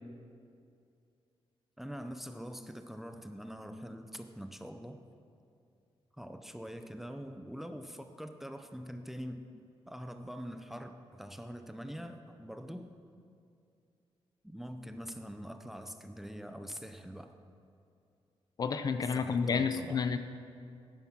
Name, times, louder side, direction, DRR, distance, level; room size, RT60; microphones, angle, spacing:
voice 1, 1.8-5.0 6.2-9.4 9.9-12.9 14.4-17.3 19.1-20.0, equal, 5° right, 7 dB, 0.6 m, -44 dB
voice 2, 18.6-20.2, left 5 dB, 40° left, 9 dB, 0.6 m, -30 dB
14.5 x 10.5 x 5.9 m, 2.4 s
wide cardioid pair, 165°, 10 cm